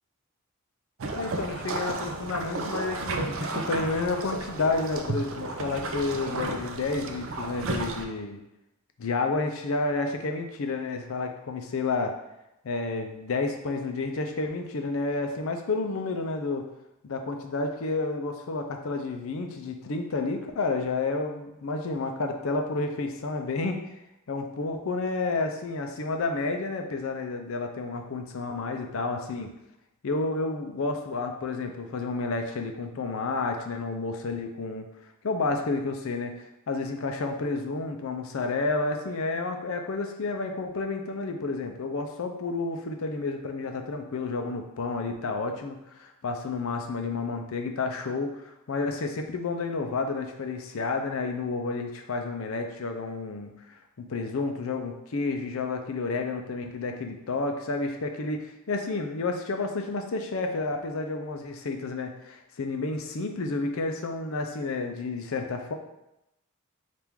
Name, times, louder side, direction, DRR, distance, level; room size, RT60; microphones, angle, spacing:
sound 1, 1.0-8.0, right 3 dB, 60° right, 0.5 m, -33 dB
voice 1, 1.1-8.4 9.0-12.1 12.6-16.7 17.0-23.8 24.3-29.5 30.0-34.9 35.2-36.3 36.7-53.8 54.1-65.7, left 3 dB, 65° left, 4 dB, 0.5 m, -30 dB
4.4 x 2.5 x 3.5 m, 0.87 s
head